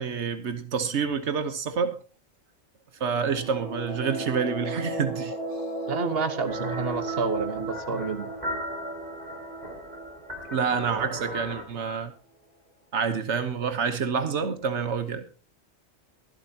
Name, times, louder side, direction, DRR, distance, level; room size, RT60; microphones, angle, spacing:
voice 1, 0.0-2.0 3.0-5.3 10.5-12.1 12.9-15.2, right 6 dB, 90° right, 1.4 m, -28 dB
sound 1, 3.0-11.6, right 2 dB, 55° left, 3.0 m, -36 dB
voice 2, 5.9-8.3, right 4 dB, 60° right, 1.5 m, -29 dB
sound 2, 6.5-11.6, equal, 40° right, 2.2 m, -37 dB
23.5 x 8.1 x 2.9 m
omnidirectional pair, 1.2 m